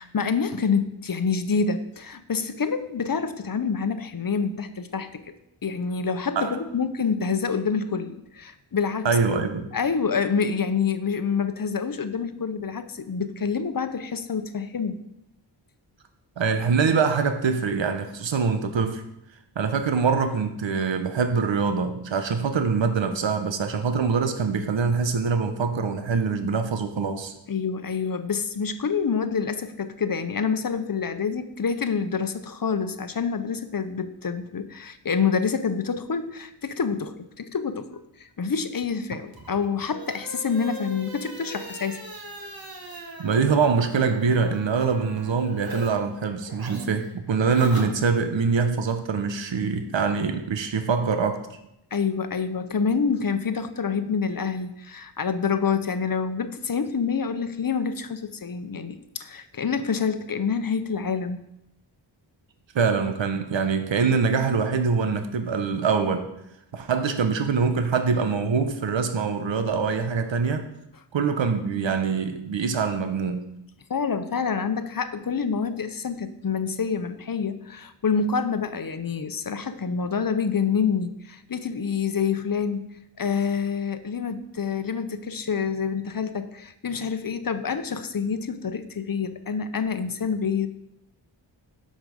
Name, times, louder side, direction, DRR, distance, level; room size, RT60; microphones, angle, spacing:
voice 1, 0.0-5.3 5.6-9.1 9.7-15.0 27.5-42.0 51.9-61.4 73.9-82.9 83.2-90.7, left 6 dB, 45° left, 10 dB, 0.9 m, -27 dB
voice 2, 9.0-9.7 16.4-19.0 19.6-27.3 43.2-51.4 62.7-66.3 66.7-70.7 71.1-73.5, right 5 dB, 70° right, 7 dB, 1.0 m, -24 dB
sound 1, 39.3-45.9 46.2-48.4, right 2 dB, 50° right, 2.0 m, -40 dB
12.5 x 5.3 x 5.2 m, 0.83 s
cardioid pair, 50°, 46 cm